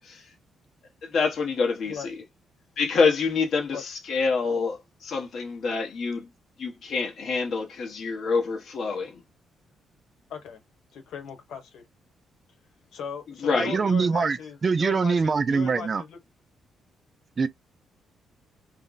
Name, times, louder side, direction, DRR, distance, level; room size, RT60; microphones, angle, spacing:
voice 1, 1.0-2.1 2.8-6.3 6.6-9.2 13.4-13.8, left 4 dB, 50° left, 1.1 m, -26 dB
voice 2, 10.3-10.6 10.9-11.8 12.9-16.2, left 7 dB, 80° left, 1.2 m, -38 dB
voice 3, 13.6-14.4 14.6-16.0 17.4-17.5, right 5 dB, 30° right, 0.3 m, -23 dB
3.2 x 2.1 x 3.8 m
cardioid pair, 150°, 0 cm